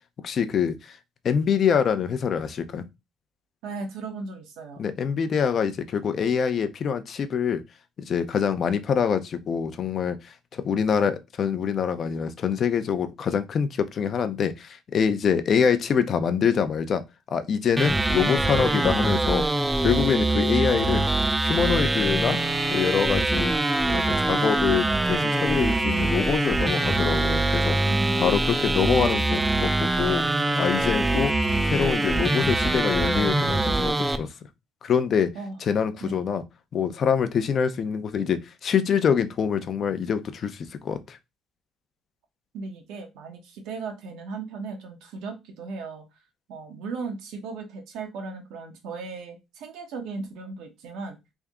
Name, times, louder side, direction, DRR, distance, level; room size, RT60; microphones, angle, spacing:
voice 1, 0.2-0.9 1.2-2.8 4.8-7.6 8.0-17.0 17.3-19.5 19.8-21.0 21.4-22.4 22.7-23.5 23.9-27.8 28.2-30.3 30.6-31.3 31.7-34.3 34.8-35.3 35.6-36.4 36.7-41.2, left 7 dB, 50° left, 0.6 m, -25 dB
voice 2, 3.6-4.9 27.9-28.4 35.3-35.6 36.0-36.2 42.5-46.0 46.5-51.2, right 4 dB, 80° right, 1.1 m, -36 dB
sound 1, 17.8-34.2, right 2 dB, 15° right, 0.4 m, -23 dB
3.5 x 2.7 x 3.6 m
cardioid pair, 100°, 0 cm